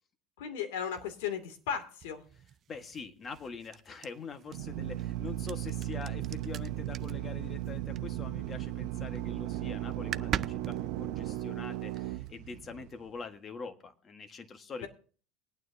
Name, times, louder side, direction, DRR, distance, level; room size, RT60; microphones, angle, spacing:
voice 1, 0.4-2.2 14.8-14.9, left 8 dB, 85° left, 7 dB, 2.5 m, -36 dB
sound 1, 0.9-8.6 8.9-9.4 9.6-9.7 9.9-12.3, right 9 dB, 35° right, 0.4 m, -42 dB
voice 2, 2.7-14.9, left 5 dB, 25° left, 8 dB, 1.5 m, -44 dB
Drill, 4.5-13.1, right 14 dB, 65° right, 0.7 m, -36 dB
22.0 x 9.2 x 2.7 m, 0.42 s
supercardioid pair, 130°, 0 cm